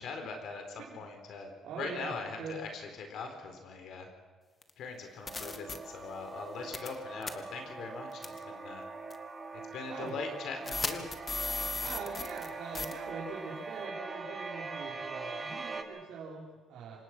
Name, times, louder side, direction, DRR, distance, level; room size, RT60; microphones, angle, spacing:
voice 1, 0.0-4.1 4.8-8.8 9.5-11.0, left 4 dB, 70° left, 5 dB, 4.2 m, -41 dB
voice 2, 1.6-2.6 9.9-10.1 11.6-17.0, right 5 dB, 75° right, -4 dB, 4.2 m, -43 dB
sound 1, 4.6-4.7 5.3-5.8 6.7-7.0 7.2-7.3 8.2-8.4 9.1-9.2 10.7-12.5 12.7-12.9, left 3 dB, 25° left, 2.0 m, -35 dB
sound 2, 5.2-15.8, right 3 dB, 25° right, 2.5 m, -42 dB
27.5 x 17.5 x 6.1 m, 1.5 s
cardioid pair, 110°, 0 cm